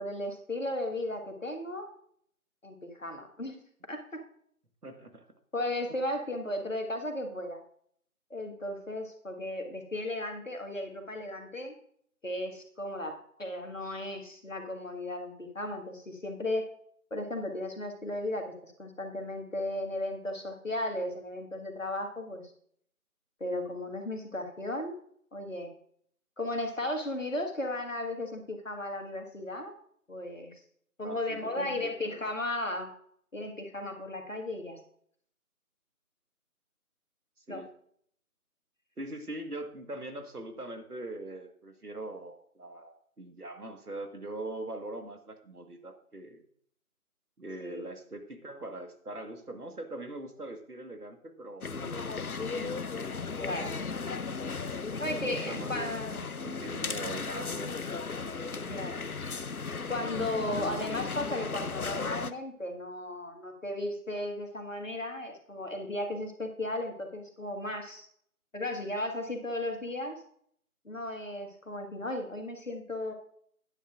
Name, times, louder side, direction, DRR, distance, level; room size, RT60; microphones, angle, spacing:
voice 1, 0.0-1.9 2.6-3.6 3.9-4.2 5.5-7.6 8.3-11.7 12.2-16.7 17.1-22.5 23.4-25.0 25.3-25.7 26.4-29.7 30.1-30.6 31.0-32.9 33.3-34.8 37.5-37.6 47.6-47.8 53.4-53.8 55.0-56.2 58.7-59.1 59.9-68.1 68.5-70.2 70.9-73.1, left 1 dB, 60° left, 3 dB, 1.8 m, -35 dB
voice 2, 4.8-5.2 31.0-32.2 37.5-37.7 39.0-46.4 47.4-52.8 53.6-53.9 55.1-57.8 58.5-58.9 60.2-60.5, right 1 dB, 85° right, 6 dB, 1.7 m, -42 dB
sound 1, 51.6-62.3, left 4 dB, 75° left, 0.7 m, -36 dB
13.0 x 9.9 x 2.5 m, 0.64 s
figure-of-eight pair, 175°, 44 cm